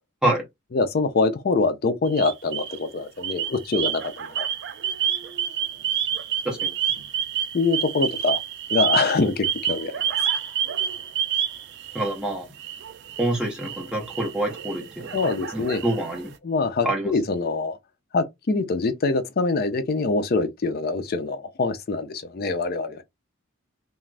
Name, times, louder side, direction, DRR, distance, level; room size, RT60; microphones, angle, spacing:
voice 1, 0.7-4.5 7.5-8.4 8.7-10.2 15.1-15.8 16.4-17.8 18.1-23.0, left 3 dB, 40° left, 0.4 m, -24 dB
sound 1, 2.1-2.8 3.2-12.2 12.6-16.3, right 9 dB, 50° right, 0.3 m, -29 dB
voice 2, 11.9-12.5 13.2-15.1 15.5-16.3 16.8-17.1, right 1 dB, 5° right, 0.8 m, -26 dB
2.4 x 2.3 x 3.2 m
head